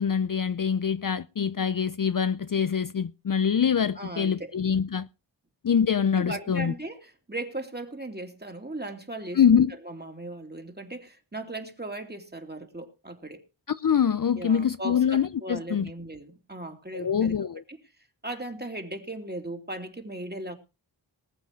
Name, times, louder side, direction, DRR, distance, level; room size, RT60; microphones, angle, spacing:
voice 1, 0.0-5.1 5.6-6.7 9.3-9.7 13.7-15.9 16.9-17.6, left 7 dB, 50° left, 0.6 m, -24 dB
voice 2, 3.9-4.5 6.1-9.4 9.8-13.4 14.4-17.3 17.7-17.8 18.2-20.5, right 2 dB, 20° right, 2.8 m, -37 dB
20.0 x 8.1 x 4.6 m
wide cardioid pair, 45°, 44 cm